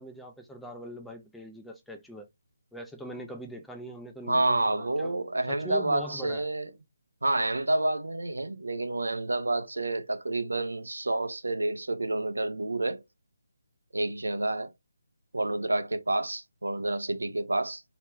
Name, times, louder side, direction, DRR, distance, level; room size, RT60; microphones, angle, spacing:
voice 1, 0.0-2.3 2.7-5.2 5.5-6.5, right 1 dB, ahead, 0.4 m, -41 dB
voice 2, 4.3-6.7 7.2-13.0 13.9-14.7 15.3-17.8, right 2 dB, 90° right, 0.6 m, -29 dB
3.2 x 2.9 x 3.2 m
figure-of-eight pair, 160°, 0 cm